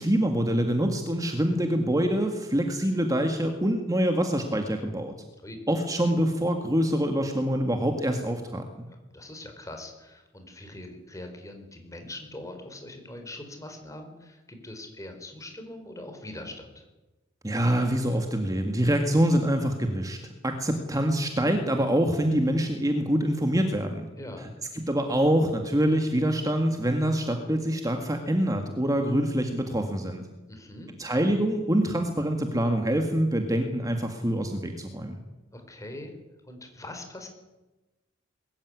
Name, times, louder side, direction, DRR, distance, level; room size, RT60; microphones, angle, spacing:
voice 1, 0.0-5.1 5.7-8.9 17.4-20.2 20.4-24.1 24.4-24.5 24.7-30.3 31.0-35.2, equal, 20° right, 5 dB, 1.9 m, -25 dB
voice 2, 8.9-16.8 24.1-24.5 30.5-30.9 35.5-36.1 36.4-37.3, left 1 dB, 15° left, 5 dB, 4.3 m, -42 dB
22.0 x 14.5 x 9.7 m, 1.1 s
head